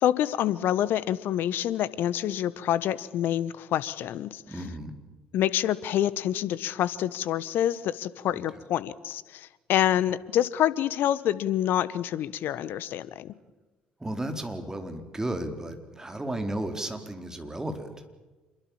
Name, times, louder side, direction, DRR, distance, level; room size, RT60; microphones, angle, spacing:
voice 1, 0.0-4.4 5.3-13.4, left 11 dB, 60° left, 18 dB, 1.2 m, -27 dB
voice 2, 4.5-5.0 14.0-18.0, right 1 dB, 15° right, 6 dB, 4.4 m, -34 dB
27.0 x 23.0 x 7.3 m, 1.2 s
figure-of-eight pair, 50°, 4 cm